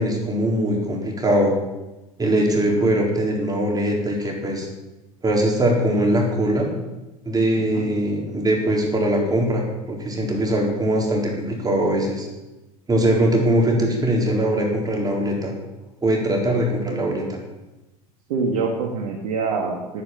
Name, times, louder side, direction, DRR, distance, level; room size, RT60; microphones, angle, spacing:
voice 1, 0.0-1.5 2.2-4.7 5.2-6.7 7.3-12.3 12.9-15.5 16.0-17.4, right 1 dB, 20° right, 0 dB, 4.0 m, -21 dB
voice 2, 7.6-7.9 18.3-20.0, right 4 dB, 75° right, 0 dB, 2.1 m, -25 dB
9.6 x 9.4 x 7.4 m, 1.0 s
hypercardioid pair, 85°, 19 cm